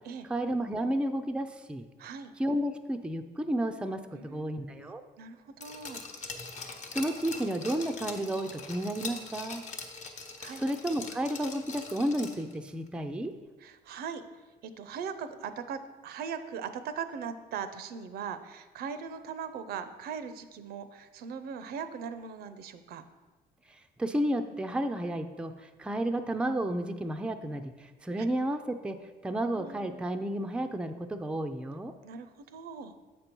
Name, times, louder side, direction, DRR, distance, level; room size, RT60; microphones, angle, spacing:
voice 1, 0.3-1.9 2.4-5.0 6.9-9.6 10.6-13.3 23.7-29.0 29.2-31.9, right 1 dB, 5° right, 6 dB, 0.4 m, -32 dB
voice 2, 2.0-2.3 4.1-6.0 10.4-10.6 13.6-14.2 14.6-23.0 28.2-28.3 29.5-30.0 32.0-33.0, right 6 dB, 70° right, 11 dB, 0.5 m, -40 dB
Glass, 5.6-12.5 12.9-13.0, left 4 dB, 45° left, 0.9 m, -42 dB
7.5 x 5.3 x 4.4 m, 1.3 s
cardioid pair, 110°, 17 cm